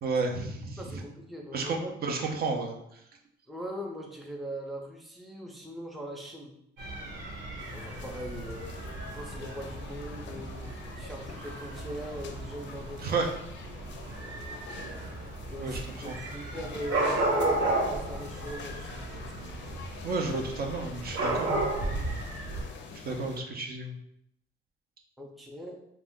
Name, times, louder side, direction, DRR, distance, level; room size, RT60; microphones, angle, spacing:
voice 1, 0.0-1.0 1.5-2.7 13.0-13.3 15.6-16.1 20.0-21.6 23.0-24.0, right 3 dB, 50° right, 1 dB, 0.5 m, -32 dB
voice 2, 0.8-1.9 3.5-6.6 7.7-13.3 13.9-14.6 15.5-19.8 25.2-25.8, equal, ahead, -1 dB, 0.5 m, -41 dB
Dog / Cat, 6.8-22.6, right 2 dB, 75° right, 1.2 m, -34 dB
sound 1, 7.6-23.4, left 5 dB, 65° left, 0.4 m, -45 dB
2.5 x 2.2 x 3.6 m, 0.78 s
cardioid pair, 90°, 20 cm